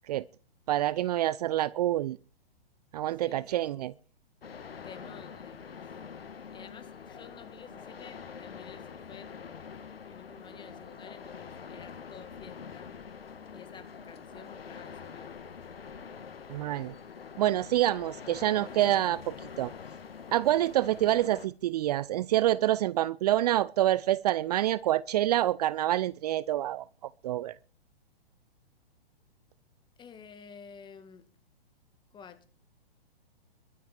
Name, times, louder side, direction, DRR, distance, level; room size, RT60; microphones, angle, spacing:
voice 1, 0.7-2.2 2.9-3.9 16.5-16.9 17.4-19.7 20.3-26.8 27.2-27.5, right 13 dB, 40° right, 0.6 m, -27 dB
voice 2, 3.2-3.9 4.8-5.8 6.5-9.7 10.0-12.9 13.5-15.4 30.0-31.3 32.1-32.4, left 6 dB, 15° left, 2.0 m, -51 dB
sound 1, 4.4-21.5, left 6 dB, 70° left, 1.8 m, -45 dB
22.5 x 9.2 x 4.5 m
figure-of-eight pair, 120°, 30 cm